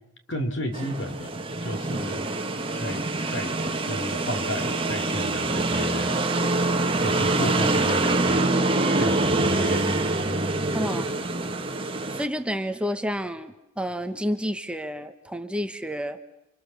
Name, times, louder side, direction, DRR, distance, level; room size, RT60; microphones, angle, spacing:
voice 1, 0.3-2.3 2.7-3.5 3.9-6.2 7.0-8.4 9.0-10.4 10.7-11.0, equal, 80° left, 8 dB, 3.5 m, -33 dB
sound 1, 0.7-12.3, right 2 dB, 30° right, 2.1 m, -25 dB
voice 2, 10.7-11.1 12.1-16.2, equal, 5° right, 8 dB, 1.2 m, -30 dB
29.0 x 27.0 x 7.2 m, 0.90 s
head